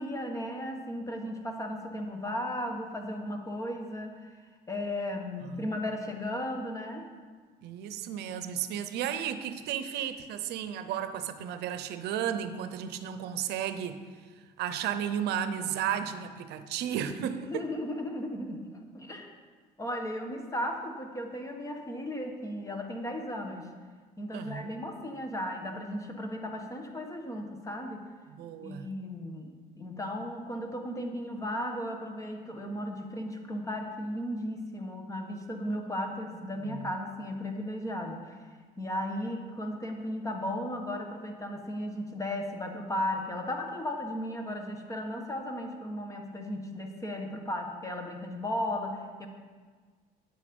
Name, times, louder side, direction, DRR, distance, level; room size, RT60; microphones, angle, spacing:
voice 1, 0.0-4.3 4.7-7.1 17.4-19.3 19.8-23.7 24.2-28.1 28.6-38.4 38.8-49.3, left 1 dB, 20° left, 3 dB, 1.4 m, -35 dB
voice 2, 7.6-14.0 14.6-17.6 24.3-24.8 28.3-28.9 35.7-35.9 36.6-36.9, right 9 dB, 80° right, 10 dB, 0.7 m, -34 dB
9.2 x 8.4 x 5.3 m, 1.5 s
cardioid pair, 110°, 17 cm